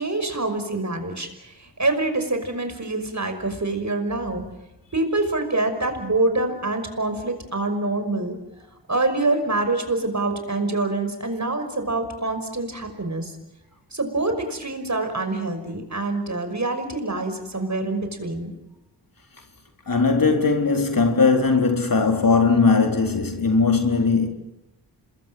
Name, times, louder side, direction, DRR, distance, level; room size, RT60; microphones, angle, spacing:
voice 1, 0.0-4.4 4.9-8.4 8.9-13.4 13.9-18.5, right 2 dB, 40° right, 5.8 m, -25 dB
voice 2, 19.9-24.3, left 4 dB, 50° left, 3.9 m, -19 dB
27.0 x 21.5 x 7.8 m
cardioid pair, 40°, 44 cm